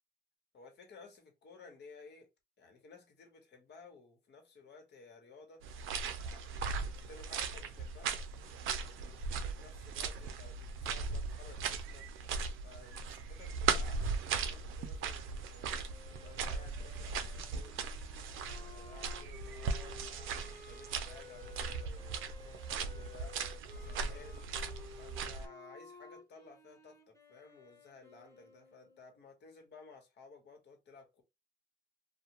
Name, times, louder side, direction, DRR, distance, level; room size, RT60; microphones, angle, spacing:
voice 1, 0.5-2.3 2.6-5.6 6.2-6.4 6.8-12.1 12.6-17.8 18.4-23.4 23.7-24.7 25.0-31.2, left 4 dB, 60° left, 1.2 m, -56 dB
sound 1, 5.6-25.5, right 5 dB, 85° right, 0.5 m, -38 dB
Wind instrument woodwind instrument, 15.9-29.3, left 3 dB, 15° left, 1.1 m, -55 dB
2.4 x 2.2 x 2.9 m
cardioid pair, 90°, 20 cm